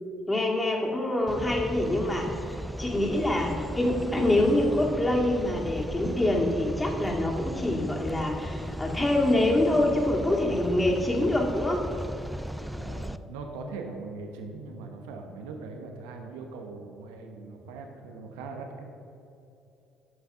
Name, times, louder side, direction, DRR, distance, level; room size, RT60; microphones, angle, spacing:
voice 1, 0.3-11.9, left 1 dB, 15° left, -1 dB, 2.1 m, -25 dB
sound 1, 1.3-13.2, equal, ahead, 0.4 m, -36 dB
voice 2, 12.8-18.8, right 3 dB, 90° right, 4 dB, 1.0 m, -40 dB
9.6 x 6.2 x 5.6 m, 2.8 s
supercardioid pair, 70°, 0 cm